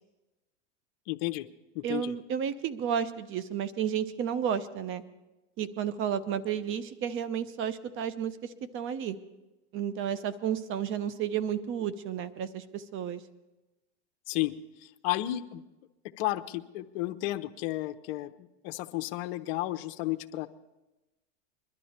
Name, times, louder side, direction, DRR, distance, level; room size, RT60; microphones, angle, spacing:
voice 1, 1.1-1.5 1.7-2.1 14.3-14.5 14.8-15.6 16.2-20.5, left 16 dB, 55° left, 10 dB, 0.8 m, -33 dB
voice 2, 1.8-5.0 5.6-9.2 9.7-13.2, right 8 dB, 35° right, 14 dB, 0.8 m, -32 dB
21.5 x 12.0 x 4.3 m, 1.0 s
supercardioid pair, 120°, 36 cm